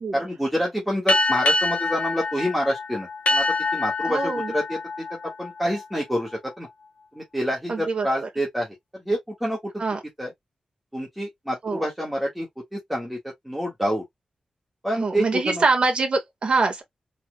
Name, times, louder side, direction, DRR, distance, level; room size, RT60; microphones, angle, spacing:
voice 1, 0.1-3.4 3.7-4.8 5.4-6.7 7.2-8.7 9.1-9.6 10.2-10.3 10.9-12.5 12.7-13.2 13.5-14.0 14.8-15.6, equal, 5° right, 1.8 m, -27 dB
sound 1, 1.1-6.2, left 2 dB, 65° left, 1.0 m, -25 dB
voice 2, 4.1-4.5 7.7-8.3 9.8-10.0 11.6-11.9 15.0-16.8, right 3 dB, 50° right, 1.7 m, -24 dB
4.4 x 4.0 x 2.3 m
wide cardioid pair, 150°, 2 cm